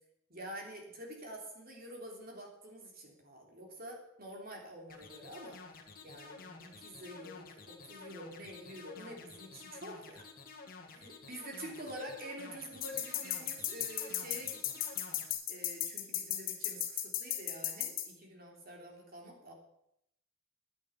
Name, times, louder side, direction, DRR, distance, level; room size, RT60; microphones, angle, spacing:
voice 1, 0.3-5.6 6.0-10.3 10.9-14.6 15.5-19.5, equal, 50° right, 0 dB, 3.2 m, -47 dB
sound 1, 4.9-15.3, left 4 dB, 45° left, 2.0 m, -51 dB
sound 2, 12.8-18.1, left 12 dB, 75° left, 2.1 m, -35 dB
10.5 x 10.5 x 7.2 m, 0.76 s
head